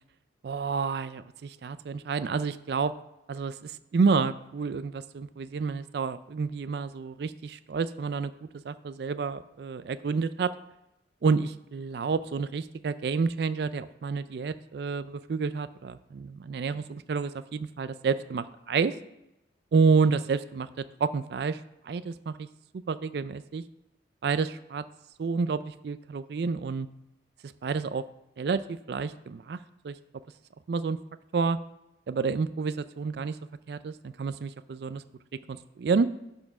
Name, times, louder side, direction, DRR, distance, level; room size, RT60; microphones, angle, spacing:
voice 1, 0.4-2.9 3.3-8.3 8.6-10.5 11.2-18.9 19.7-22.5 22.9-23.6 24.2-24.8 25.2-26.9 27.4-28.0 28.4-29.6 29.8-29.9 30.7-31.0 31.3-31.6 32.1-33.4 33.7-35.0 35.5-36.1, right 5 dB, 65° right, 13 dB, 0.4 m, -29 dB
10.5 x 4.4 x 5.8 m, 0.90 s
head